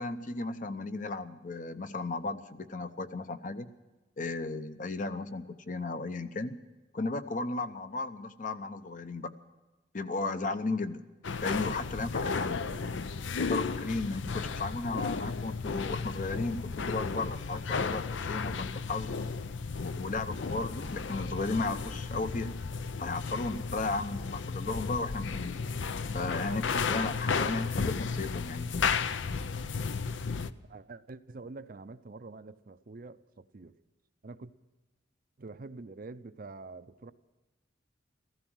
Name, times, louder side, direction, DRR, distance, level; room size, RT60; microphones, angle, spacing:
voice 1, 0.0-3.7 4.2-6.6 6.9-9.3 9.9-11.0 11.4-12.7 13.4-19.2 19.8-22.5 23.0-25.6 26.1-28.7, left 3 dB, 40° left, 10 dB, 0.8 m, -35 dB
sound 1, 11.2-30.5, left 5 dB, 75° left, 0.6 m, -34 dB
voice 2, 30.7-33.7 34.2-34.5 35.4-37.1, right 3 dB, 45° right, 12 dB, 0.5 m, -46 dB
15.5 x 14.5 x 6.2 m, 1.1 s
head